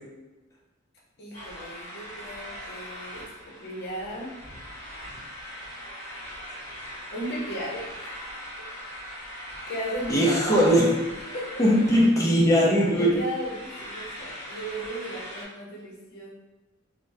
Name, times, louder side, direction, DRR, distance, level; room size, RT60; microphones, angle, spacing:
voice 1, 1.2-4.3 7.1-8.2 9.3-10.7 11.3-11.6 12.9-16.3, equal, 55° left, -5 dB, 0.8 m, -36 dB
sound 1, 1.3-15.5, equal, 35° left, 1.1 m, -41 dB
voice 2, 10.1-10.9 11.6-13.1, equal, 15° left, -4 dB, 0.6 m, -20 dB
3.5 x 2.1 x 2.6 m, 1.1 s
head